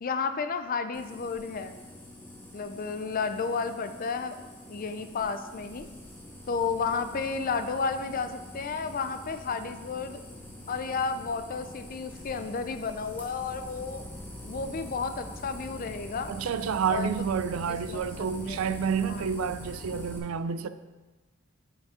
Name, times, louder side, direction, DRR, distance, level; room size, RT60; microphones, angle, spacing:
voice 1, 0.0-1.8 2.5-4.4 4.7-5.9 6.5-10.2 10.7-14.0 14.4-16.3 16.9-17.1 17.7-18.8 19.1-19.3, left 5 dB, 45° left, 0.4 m, -32 dB
sound 1, 0.9-20.2, equal, 10° left, 1.2 m, -44 dB
voice 2, 16.3-20.7, right 6 dB, 90° right, 0.4 m, -29 dB
5.9 x 5.3 x 4.9 m
head